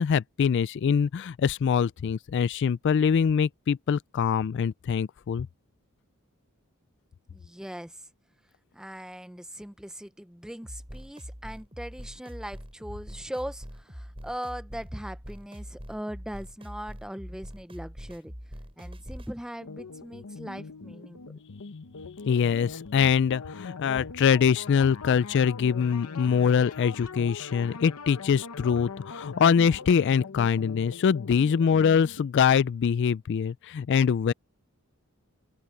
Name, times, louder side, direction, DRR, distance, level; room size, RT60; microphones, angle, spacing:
voice 1, 0.0-5.5 22.3-34.3, left 7 dB, 55° left, 0.3 m, -24 dB
voice 2, 7.3-8.0 8.7-18.3 18.8-21.2, equal, 5° right, 0.6 m, -40 dB
sound 1, 10.6-19.3, equal, 25° right, 7.5 m, -43 dB
sound 2, 19.6-32.3, left 4 dB, 85° left, 0.9 m, -42 dB
head